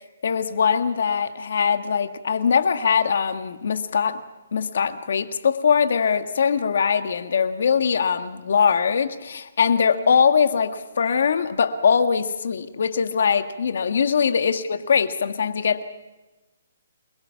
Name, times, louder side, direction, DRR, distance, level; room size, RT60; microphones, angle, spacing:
voice 1, 0.2-4.2 4.5-15.8, left 6 dB, 60° left, 8 dB, 1.8 m, -22 dB
29.5 x 21.5 x 5.9 m, 1.1 s
hypercardioid pair, 165°, 0 cm